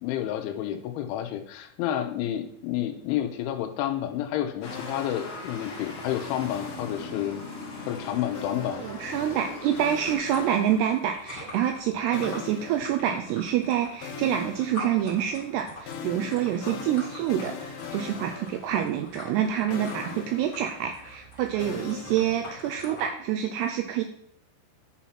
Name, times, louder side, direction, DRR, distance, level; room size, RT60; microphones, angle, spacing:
voice 1, 0.0-7.4 7.9-8.8, left 11 dB, 90° left, 6 dB, 3.1 m, -30 dB
sound 1, 4.6-10.1, left 2 dB, 45° left, 2.3 m, -39 dB
sound 2, 4.7-5.9 6.5-7.7 8.3-11.4 12.1-13.7 14.0-19.5 19.7-23.0, left 6 dB, 70° left, 2.6 m, -42 dB
voice 2, 8.8-24.0, right 10 dB, 85° right, 6 dB, 2.3 m, -27 dB
sound 3, 9.7-23.1, left 1 dB, 30° left, 1.0 m, -44 dB
10.5 x 4.2 x 5.7 m, 0.71 s
omnidirectional pair, 5.3 m